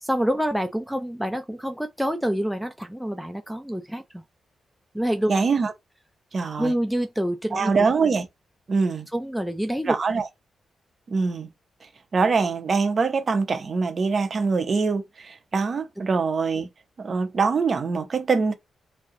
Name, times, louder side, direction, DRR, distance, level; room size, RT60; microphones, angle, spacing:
voice 1, 0.0-4.2 4.9-5.3 6.6-7.7 9.1-10.0, equal, ahead, 0.4 m, -27 dB
voice 2, 5.3-5.7 6.3-6.7 7.5-8.3 8.7-9.1 9.9-10.3 11.1-11.5 12.1-16.7 17.0-18.5, right 4 dB, 40° right, 0.8 m, -23 dB
3.2 x 2.8 x 3.7 m
wide cardioid pair, 135°, 0 cm